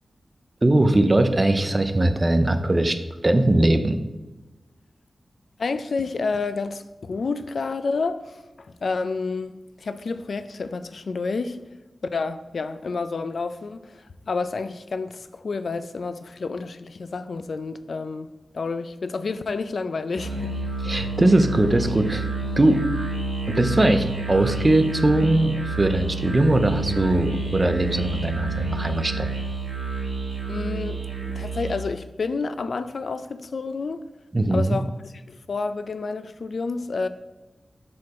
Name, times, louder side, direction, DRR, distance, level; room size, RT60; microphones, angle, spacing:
voice 1, 0.6-3.0 3.2-4.0 20.8-22.3 22.6-22.8 23.5-29.3 34.3-34.8, right 1 dB, 25° right, 0.5 m, -20 dB
voice 2, 5.6-11.6 12.1-18.3 18.5-20.6 30.5-31.0 31.4-34.0 34.5-37.1, left 4 dB, 65° left, 0.3 m, -29 dB
Musical instrument, 20.1-31.9, right 3 dB, 70° right, 1.7 m, -29 dB
6.4 x 4.4 x 4.2 m
wide cardioid pair, 120°, 0 cm